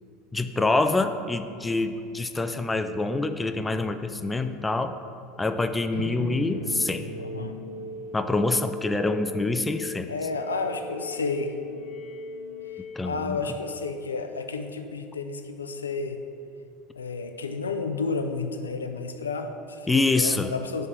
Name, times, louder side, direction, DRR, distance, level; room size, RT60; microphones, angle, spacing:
voice 1, 0.3-5.0 5.4-7.0 8.1-10.1 13.0-13.4 19.9-20.5, left 3 dB, 15° left, 9 dB, 0.3 m, -26 dB
sound 1, 5.9-13.8, left 1 dB, 60° left, 1.3 m, -38 dB
voice 2, 7.2-7.5 10.1-11.6 13.0-16.2 17.0-20.9, left 4 dB, 75° left, 7 dB, 0.4 m, -31 dB
5.5 x 5.2 x 6.1 m, 2.5 s
figure-of-eight pair, 75°, 0 cm